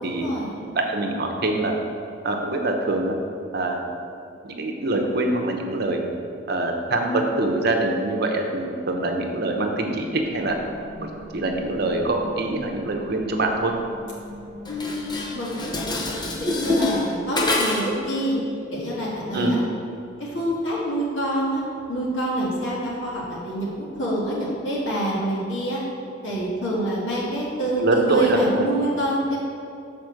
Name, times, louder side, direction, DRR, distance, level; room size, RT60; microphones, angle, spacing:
voice 1, 0.0-0.5 14.7-18.4 18.7-19.6 20.2-21.6 21.9-25.8 26.2-29.4, right 1 dB, 80° left, -6 dB, 1.5 m, -26 dB
voice 2, 0.6-1.8 2.2-3.2 3.5-3.8 4.4-6.1 6.5-10.6 11.0-11.1 11.3-13.7 19.3-19.6 27.8-28.7, right 2 dB, 60° right, 2 dB, 0.8 m, -24 dB
sound 1, 9.9-17.7, left 1 dB, 65° left, 1.2 m, -41 dB
Dishes pots and pans, 14.6-18.0, left 2 dB, 25° left, 0.7 m, -26 dB
6.0 x 4.3 x 6.4 m, 2.6 s
head